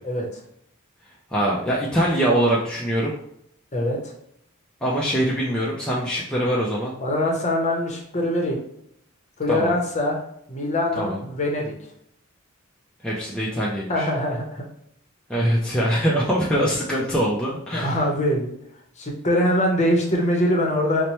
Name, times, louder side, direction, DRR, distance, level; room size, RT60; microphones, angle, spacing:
voice 1, 0.0-0.4 3.7-4.1 7.0-8.6 9.4-10.2 10.5-11.7 13.9-14.6 17.0-17.1 17.7-18.5 19.0-21.1, left 1 dB, 35° left, 0 dB, 0.8 m, -23 dB
voice 2, 1.3-3.1 4.8-6.9 9.5-9.7 11.0-11.2 13.0-14.1 15.3-18.0, right 1 dB, 5° left, -5 dB, 0.4 m, -23 dB
4.2 x 2.1 x 3.0 m, 0.72 s
head